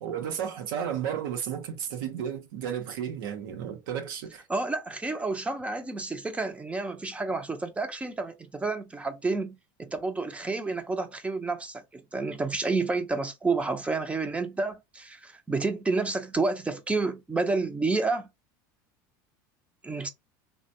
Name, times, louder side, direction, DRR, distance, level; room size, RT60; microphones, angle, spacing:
voice 1, 0.0-4.4, right 8 dB, 80° right, 0.8 m, -33 dB
voice 2, 4.5-18.3 19.8-20.1, right 3 dB, 10° right, 0.6 m, -30 dB
3.3 x 2.2 x 2.6 m
supercardioid pair, 110°, 11 cm